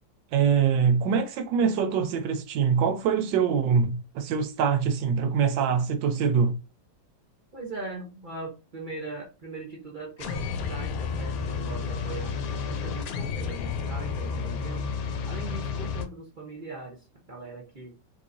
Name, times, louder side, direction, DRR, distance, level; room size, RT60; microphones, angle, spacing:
voice 1, 0.3-6.6, right 6 dB, 85° right, 1.3 m, -24 dB
voice 2, 7.5-12.3 12.7-14.9 15.3-17.0 17.3-17.9, right 3 dB, 45° right, 0.6 m, -40 dB
sound 1, 10.2-16.0, left 5 dB, 65° left, 1.0 m, -31 dB
3.5 x 3.0 x 2.5 m
omnidirectional pair, 1.9 m